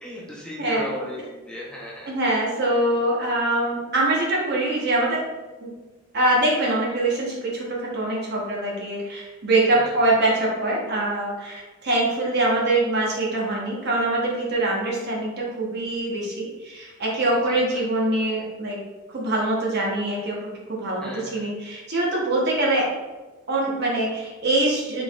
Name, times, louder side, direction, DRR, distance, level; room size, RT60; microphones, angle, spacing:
voice 1, 0.0-2.1 2.9-3.0 9.7-10.0 17.5-17.8 21.0-21.5, left 1 dB, 5° left, -5 dB, 0.5 m, -36 dB
voice 2, 0.6-1.0 2.0-5.2 5.6-5.7 6.1-18.8 19.1-20.4 20.7-22.9 23.5-25.0, right 2 dB, 55° right, -3 dB, 1.0 m, -24 dB
3.8 x 3.6 x 2.4 m, 1.2 s
head